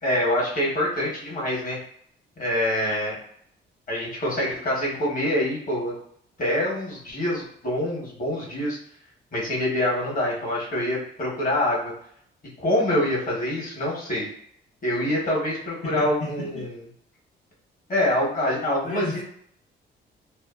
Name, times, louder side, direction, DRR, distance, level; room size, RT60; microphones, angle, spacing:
voice 1, 0.0-1.8 2.4-3.2 3.9-5.9 6.4-8.8 9.3-11.9 12.6-14.3 14.8-16.8 17.9-19.2, left 1 dB, 45° left, -4 dB, 1.2 m, -25 dB
voice 2, 15.8-16.7 18.8-19.2, left 2 dB, 65° left, -7 dB, 0.8 m, -33 dB
2.7 x 2.4 x 2.4 m, 0.67 s
cardioid pair, 90°, 20 cm